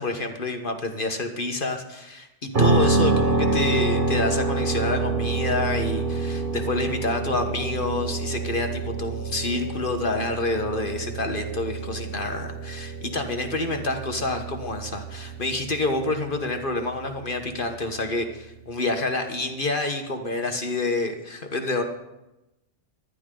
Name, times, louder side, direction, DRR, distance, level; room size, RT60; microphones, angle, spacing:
voice 1, 0.0-21.8, left 2 dB, 50° left, 5 dB, 1.4 m, -28 dB
sound 1, 2.5-18.4, right 3 dB, 50° right, 1.4 m, -27 dB
25.5 x 11.0 x 3.8 m, 0.96 s
omnidirectional pair, 1.2 m